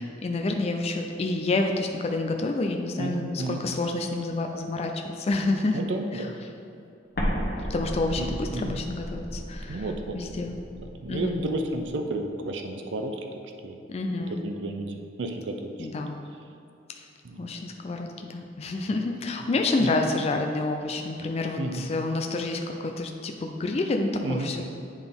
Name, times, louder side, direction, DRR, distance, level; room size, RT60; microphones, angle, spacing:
voice 1, 0.0-5.8 6.1-6.3 7.6-9.9 10.1-10.6 11.1-11.5 13.9-14.4 15.8-16.2 16.9-17.1 17.4-24.6, left 2 dB, 35° left, 3 dB, 0.4 m, -28 dB
voice 2, 3.0-3.7 5.7-6.3 8.2-8.7 9.7-10.2 11.0-13.2 13.6-13.8 14.4-15.9 17.2-17.5 18.9-19.0 19.8-19.9 21.6-21.9 24.2-24.6, right 2 dB, 65° right, 4 dB, 0.5 m, -32 dB
Explosion, 7.2-11.9, equal, 55° left, 1.0 m, -34 dB
8.8 x 3.9 x 3.6 m, 2.5 s
head